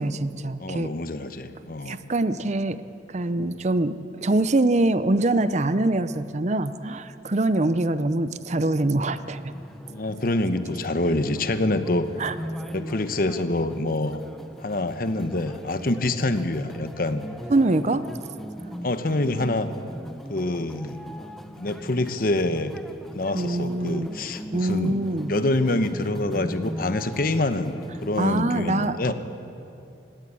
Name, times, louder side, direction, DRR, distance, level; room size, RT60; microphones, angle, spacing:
voice 1, 0.0-0.9 1.9-2.8 3.1-9.5 12.2-12.3 17.5-18.0 23.3-24.1 24.5-25.3 28.2-29.1, right 2 dB, 40° right, 13 dB, 0.6 m, -24 dB
voice 2, 0.6-2.0 3.4-3.5 9.9-12.1 12.7-14.2 14.6-17.2 18.8-19.7 20.3-21.0 21.6-22.7 23.1-25.0 25.3-29.1, left 2 dB, 50° left, 10 dB, 1.0 m, -26 dB
sound 1, 9.2-28.4, equal, ahead, 0.7 m, -39 dB
19.5 x 17.0 x 8.5 m, 2.7 s
head